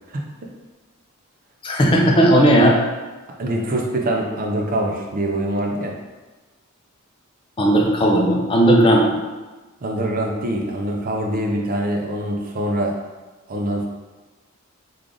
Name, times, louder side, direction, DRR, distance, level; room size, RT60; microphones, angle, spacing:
voice 1, 0.1-0.5 2.6-2.7 3.4-6.0 9.8-13.0 13.5-13.9, right 1 dB, 40° right, 1 dB, 0.5 m, -24 dB
voice 2, 1.6-2.7 7.6-9.0, right 1 dB, 25° left, -1 dB, 0.5 m, -15 dB
3.2 x 2.4 x 3.7 m, 1.2 s
head